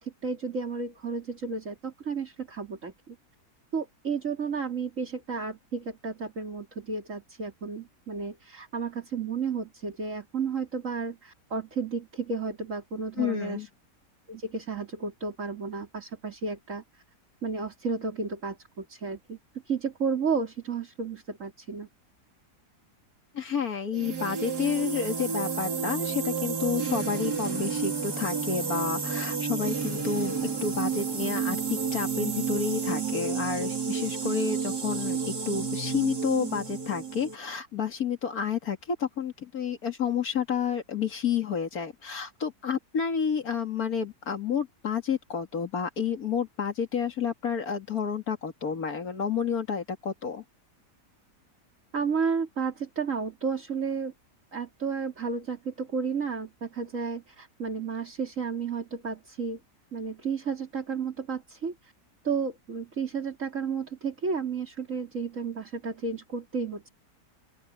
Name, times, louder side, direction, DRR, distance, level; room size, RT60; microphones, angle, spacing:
voice 1, 0.0-3.2 3.7-13.7 14.3-17.0 17.4-19.4 19.7-21.9 51.9-54.1 54.5-59.6 59.9-61.9 62.2-66.9, right 5 dB, 50° right, 3.7 m, -32 dB
voice 2, 13.2-13.7 23.3-50.4, left 6 dB, 65° left, 2.5 m, -30 dB
sound 1, 23.9-37.4, right 5 dB, 80° right, 3.4 m, -31 dB
open air
omnidirectional pair, 1.7 m